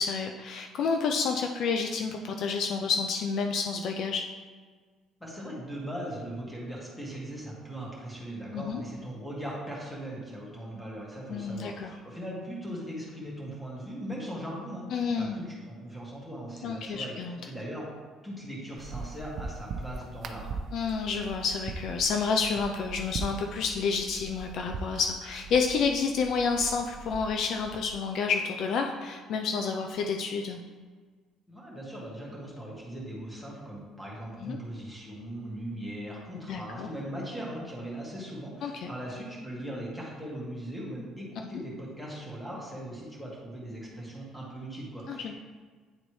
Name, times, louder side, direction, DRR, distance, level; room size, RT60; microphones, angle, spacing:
voice 1, 0.0-4.2 8.5-8.8 11.3-11.9 14.9-15.4 16.6-17.4 20.7-30.6 34.4-34.6 36.5-36.9 38.6-38.9 45.1-45.3, left 5 dB, 60° left, 4 dB, 0.5 m, -29 dB
voice 2, 5.2-17.9 18.2-20.6 31.5-45.3, right 1 dB, 5° left, -5 dB, 1.9 m, -39 dB
sound 1, 18.8-27.9, right 3 dB, 50° right, 0.5 m, -41 dB
9.7 x 4.0 x 3.1 m, 1.5 s
cardioid pair, 135°, 0 cm